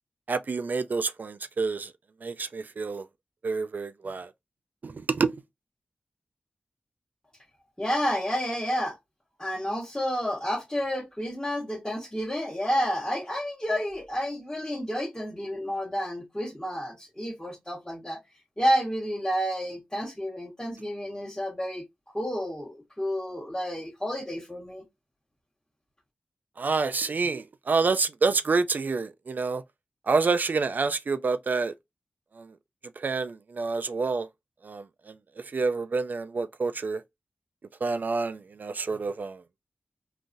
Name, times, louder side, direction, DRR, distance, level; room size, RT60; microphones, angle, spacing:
voice 1, 0.3-1.9 2.2-3.1 3.4-4.3 4.8-5.3 26.6-29.6 30.1-31.7 32.4-32.5 33.0-34.3 34.6-35.1 35.5-37.0 37.8-39.4, right 4 dB, 60° right, 0.3 m, -28 dB
voice 2, 7.8-9.0 9.4-18.2 18.6-21.8 22.1-24.8, equal, 20° left, 1.1 m, -30 dB
3.8 x 2.4 x 2.5 m
cardioid pair, 40°, 3 cm